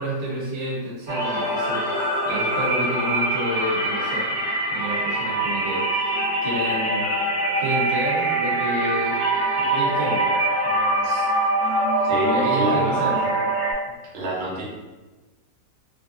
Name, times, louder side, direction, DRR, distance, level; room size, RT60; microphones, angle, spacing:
voice 1, 0.0-4.4 4.7-7.1 7.6-9.2 9.6-10.2 10.6-11.1 12.3-13.4, equal, 35° right, -7 dB, 1.3 m, -29 dB
sound 1, 1.1-13.7, right 2 dB, 70° right, 1.9 m, -23 dB
voice 2, 12.0-13.2 14.1-14.6, right 1 dB, 85° right, -4 dB, 1.7 m, -28 dB
3.9 x 2.0 x 3.8 m, 1.2 s
omnidirectional pair, 2.1 m